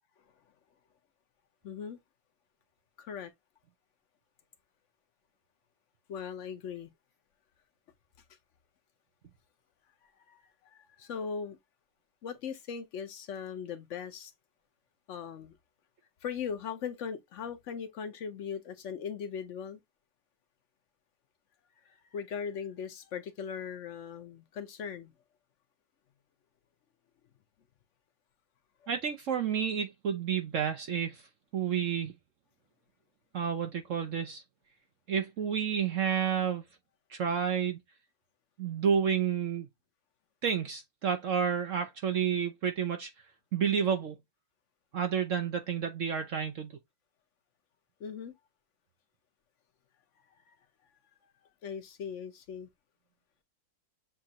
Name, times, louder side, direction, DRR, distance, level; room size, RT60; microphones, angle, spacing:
voice 1, 1.6-2.0 3.0-3.3 6.1-6.9 10.3-11.6 12.2-14.3 15.1-15.6 16.2-19.8 21.8-25.1 28.8-28.9 48.0-48.3 50.5-50.6 51.6-52.7, left 7 dB, 55° left, 0.9 m, -39 dB
voice 2, 28.9-31.2 31.5-32.1 33.3-34.4 35.1-36.6 37.1-37.8 38.6-39.7 40.4-43.1 43.5-44.2 44.9-46.7, right 7 dB, 60° right, 0.8 m, -30 dB
7.4 x 2.5 x 2.8 m
omnidirectional pair, 2.0 m